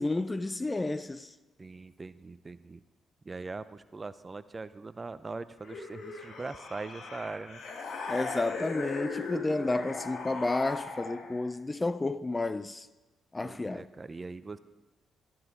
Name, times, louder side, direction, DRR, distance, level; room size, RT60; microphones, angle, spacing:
voice 1, 0.0-1.3 8.1-12.9 13.3-13.9, left 2 dB, 20° left, 0.5 m, -31 dB
voice 2, 1.6-2.8 3.2-7.6 13.4-14.6, right 3 dB, 30° right, 0.6 m, -41 dB
Zombie Growl, 5.6-11.5, left 4 dB, 65° left, 2.0 m, -38 dB
13.0 x 11.5 x 3.8 m
supercardioid pair, 55°, 0 cm